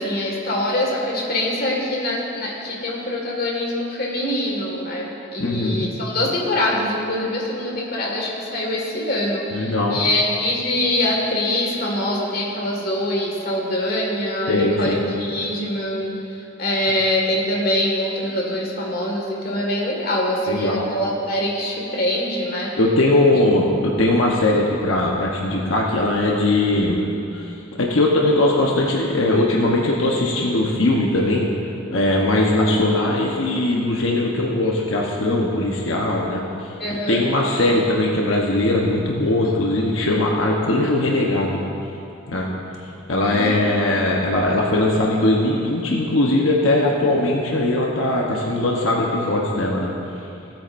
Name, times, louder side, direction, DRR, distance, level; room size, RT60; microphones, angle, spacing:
voice 1, 0.0-22.7 36.8-37.2 43.2-43.5, left 1 dB, 50° left, -2 dB, 1.9 m, -24 dB
voice 2, 5.4-5.9 9.5-10.0 14.5-15.0 20.5-20.9 22.8-27.0 27.3-31.5 31.9-41.6 42.3-42.5 43.1-49.9, left 2 dB, 90° left, -2 dB, 1.0 m, -20 dB
17.5 x 8.7 x 2.6 m, 2.8 s
head